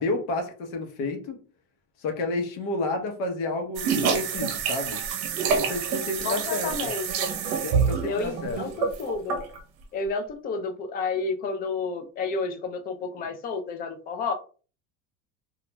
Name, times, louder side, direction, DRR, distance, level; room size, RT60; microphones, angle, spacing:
voice 1, 0.0-1.4 2.0-5.0 5.6-6.9 7.6-8.6, left 2 dB, 75° left, 0.9 m, -30 dB
sound 1, 3.8-9.6, right 6 dB, 65° right, 0.7 m, -27 dB
voice 2, 6.2-7.3 8.1-9.4 9.9-14.3, left 4 dB, 25° left, 0.4 m, -31 dB
2.4 x 2.1 x 2.9 m
cardioid pair, 150°, 34 cm